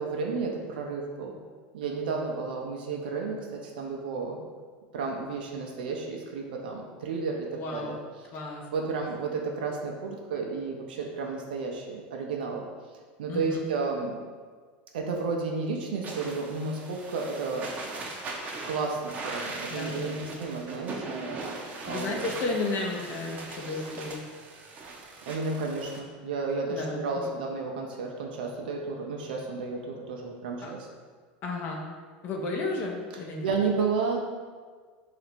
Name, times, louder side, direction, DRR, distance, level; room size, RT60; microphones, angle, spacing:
voice 1, 0.0-1.4 1.7-4.4 4.9-8.0 8.7-12.6 13.2-14.2 14.9-17.7 18.7-21.2 21.8-22.3 25.3-30.9 33.4-34.2, right 4 dB, 90° right, 1 dB, 0.5 m, -32 dB
voice 2, 7.5-8.0 8.3-9.0 13.3-13.7 19.7-20.4 21.7-24.2 26.7-27.3 30.6-30.7 31.4-31.8 32.2-33.5, left 3 dB, 45° left, 0 dB, 0.6 m, -33 dB
sound 1, 16.0-26.0, right 3 dB, 35° right, 0.6 m, -39 dB
3.9 x 2.6 x 4.3 m, 1.6 s
supercardioid pair, 125°, 5 cm